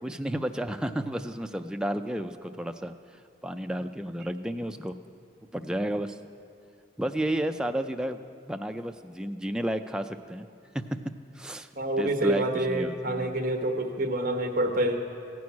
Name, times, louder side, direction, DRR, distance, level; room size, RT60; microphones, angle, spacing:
voice 1, 0.0-5.0 5.5-6.2 7.0-8.2 8.5-10.5 10.7-11.7 12.0-13.3, right 1 dB, 5° right, 6 dB, 0.4 m, -32 dB
voice 2, 11.8-15.0, right 1 dB, 50° right, 4 dB, 1.1 m, -27 dB
15.5 x 6.2 x 9.5 m, 2.5 s
head